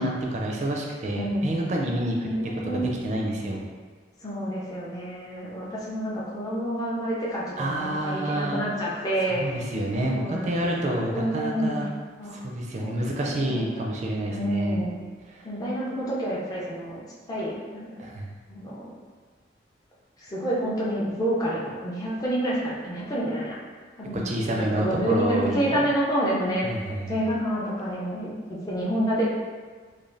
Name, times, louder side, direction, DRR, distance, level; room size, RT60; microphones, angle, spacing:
voice 1, 0.0-2.3 2.6-3.7 7.6-8.6 9.3-11.9 12.3-14.8 15.3-15.4 18.0-18.3 24.2-25.8 26.6-27.2, right 1 dB, 40° right, -1 dB, 0.4 m, -28 dB
voice 2, 1.1-1.5 2.2-2.9 4.2-9.4 10.1-11.7 12.2-12.4 12.8-13.8 14.3-15.0 15.4-17.0 17.3-18.0 18.5-18.9 20.2-23.6 24.0-24.2 24.6-26.7 27.1-28.3 28.7-29.3, right 1 dB, 20° left, -7 dB, 0.4 m, -28 dB
3.1 x 2.2 x 2.5 m, 1.4 s
head